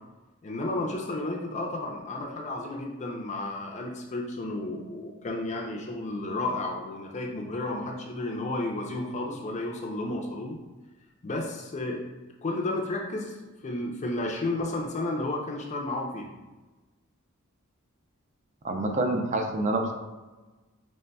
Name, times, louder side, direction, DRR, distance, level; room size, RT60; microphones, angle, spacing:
voice 1, 0.4-10.6 11.2-12.0 12.4-13.4 13.6-16.3, left 2 dB, 35° left, 0 dB, 0.5 m, -32 dB
voice 2, 18.6-19.9, right 2 dB, 35° right, 3 dB, 0.5 m, -27 dB
5.3 x 3.2 x 2.2 m, 1.2 s
head